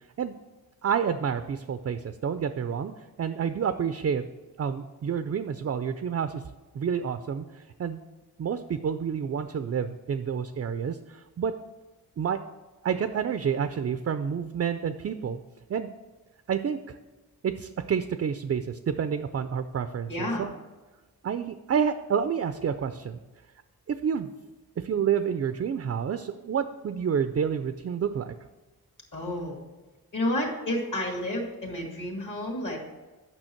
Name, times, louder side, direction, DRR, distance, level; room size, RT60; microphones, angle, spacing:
voice 1, 0.8-2.9 3.2-4.3 4.6-6.4 6.7-8.0 8.4-11.5 12.2-12.4 12.8-15.4 15.7-15.9 16.5-17.0 17.4-20.5 21.2-23.2 23.9-24.3 24.8-28.3, right 7 dB, 40° right, 10 dB, 0.4 m, -29 dB
voice 2, 20.1-20.5 29.1-29.6 30.1-32.8, left 1 dB, 55° left, -1 dB, 2.1 m, -30 dB
9.0 x 6.1 x 4.5 m, 1.2 s
wide cardioid pair, 125°, 38 cm